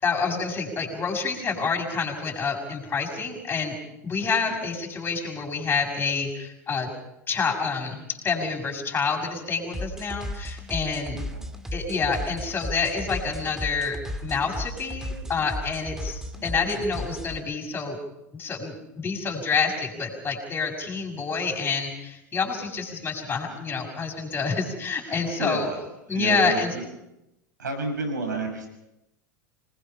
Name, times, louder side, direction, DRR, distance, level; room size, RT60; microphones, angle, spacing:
voice 1, 0.0-3.7 4.0-6.9 7.3-11.2 11.7-14.0 14.2-18.0 18.3-25.7 26.1-26.7, left 5 dB, 20° left, 1 dB, 6.1 m, -28 dB
sound 1, 9.7-17.4, equal, 5° right, 2.1 m, -35 dB
voice 2, 11.1-11.4 16.4-16.6 23.4-23.6 24.4-24.5 25.0-25.8 26.1-26.9 27.6-28.7, right 2 dB, 75° right, 4 dB, 6.5 m, -32 dB
26.5 x 20.5 x 5.7 m, 0.90 s
figure-of-eight pair, 85°, 10 cm